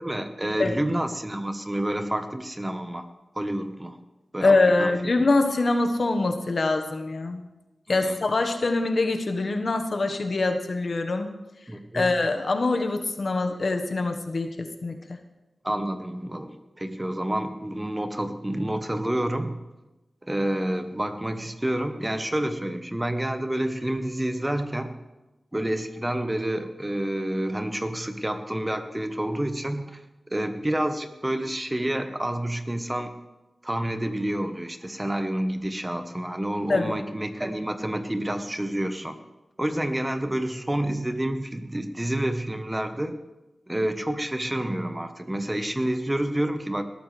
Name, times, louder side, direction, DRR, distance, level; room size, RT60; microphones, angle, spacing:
voice 1, 0.0-3.1 3.3-4.0 4.3-4.9 7.9-8.2 11.7-12.1 15.6-19.6 20.2-24.9 25.5-30.0 30.3-33.1 33.6-39.2 39.6-43.2 43.7-46.8, right 1 dB, 15° right, 8 dB, 1.2 m, -29 dB
voice 2, 4.4-7.4 7.9-11.3 11.9-14.9 36.7-37.0, left 3 dB, 60° left, 5 dB, 1.3 m, -24 dB
19.5 x 13.5 x 3.4 m, 1.0 s
wide cardioid pair, 60°, 0 cm